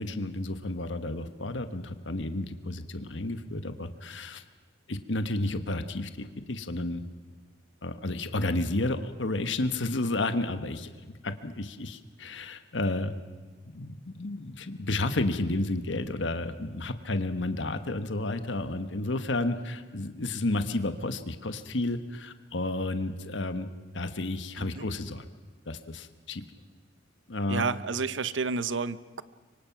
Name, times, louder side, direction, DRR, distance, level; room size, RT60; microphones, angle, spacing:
voice 1, 0.0-4.4 4.9-7.1 7.8-10.9 11.2-13.1 13.7-23.7 23.9-25.3 25.7-26.4 27.3-27.7, left 2 dB, 70° left, 9 dB, 1.3 m, -31 dB
voice 2, 27.5-29.2, right 4 dB, 80° right, 15 dB, 0.8 m, -30 dB
25.0 x 24.5 x 6.0 m, 1.4 s
head